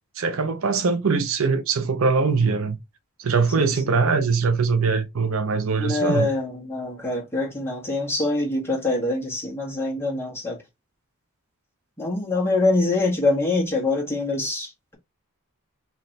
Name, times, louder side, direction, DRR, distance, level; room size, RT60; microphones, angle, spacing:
voice 1, 0.2-2.8 3.2-6.3, right 4 dB, 65° right, 0.6 m, -22 dB
voice 2, 5.8-10.6 12.0-14.9, left 2 dB, 10° left, 1.6 m, -24 dB
3.2 x 2.9 x 4.0 m
head